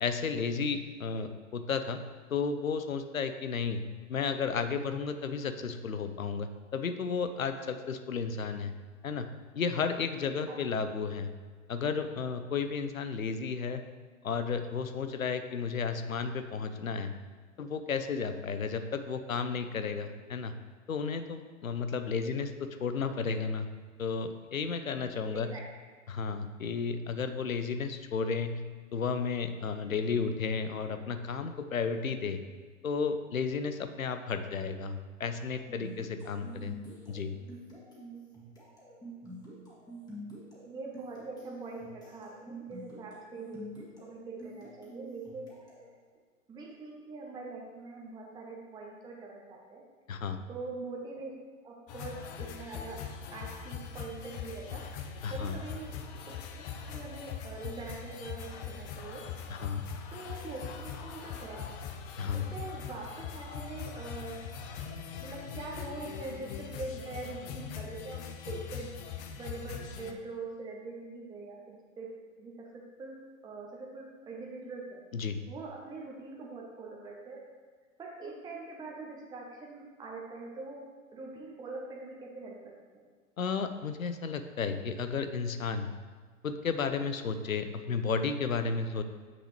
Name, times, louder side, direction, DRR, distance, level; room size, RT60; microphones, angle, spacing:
voice 1, 0.0-2.0 2.3-3.8 4.1-8.7 9.0-9.3 9.6-11.3 11.7-13.8 14.2-17.1 17.6-20.5 20.9-22.5 22.8-23.7 24.0-25.5 26.1-28.6 28.9-32.4 32.8-36.7 37.1-37.4 50.1-50.4 55.2-55.5 59.5-59.8 62.2-62.5 75.1-75.4 83.4-85.9 86.4-89.0, left 5 dB, 80° left, 9 dB, 0.7 m, -33 dB
voice 2, 10.5-10.9 22.2-22.3 25.3-25.7 40.6-45.5 46.5-49.8 50.5-51.3 51.6-54.9 55.3-59.2 60.1-61.8 62.3-64.4 65.2-69.0 69.4-72.1 72.4-75.0 75.5-77.4 78.0-80.9 81.1-82.6, right 3 dB, 10° right, -1 dB, 0.7 m, -43 dB
sound 1, 35.7-45.9, right 1 dB, 10° left, 1.8 m, -48 dB
sound 2, 51.9-70.1, left 7 dB, 30° left, 0.5 m, -41 dB
7.8 x 6.2 x 3.1 m, 1.5 s
figure-of-eight pair, 100°, 40 cm